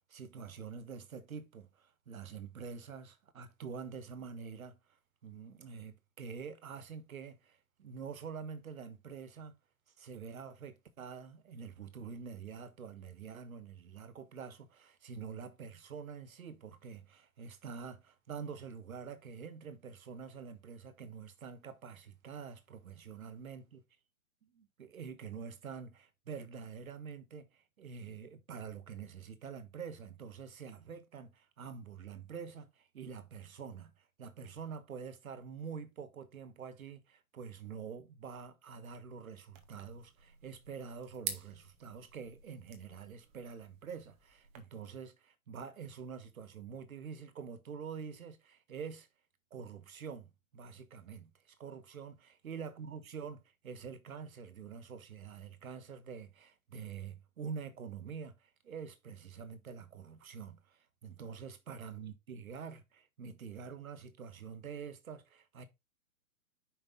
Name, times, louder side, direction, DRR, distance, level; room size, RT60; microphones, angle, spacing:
voice 1, 0.1-4.8 5.2-9.5 10.0-23.6 24.4-33.9 34.2-49.1 49.5-65.7, right 6 dB, 75° right, 1.3 m, -46 dB
sound 1, 39.5-44.6, right 9 dB, 15° right, 0.7 m, -48 dB
5.5 x 5.2 x 3.8 m
hypercardioid pair, 145°, 42 cm